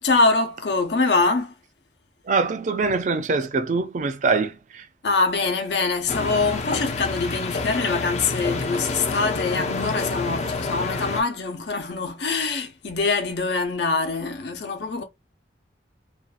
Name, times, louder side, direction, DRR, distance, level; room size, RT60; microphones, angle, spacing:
voice 1, 0.0-1.5 5.0-15.0, left 3 dB, 75° left, 0.8 m, -24 dB
voice 2, 2.2-4.9, right 4 dB, 45° right, 0.4 m, -24 dB
sound 1, 6.1-11.2, left 3 dB, 40° left, 0.5 m, -28 dB
2.6 x 2.3 x 2.4 m
head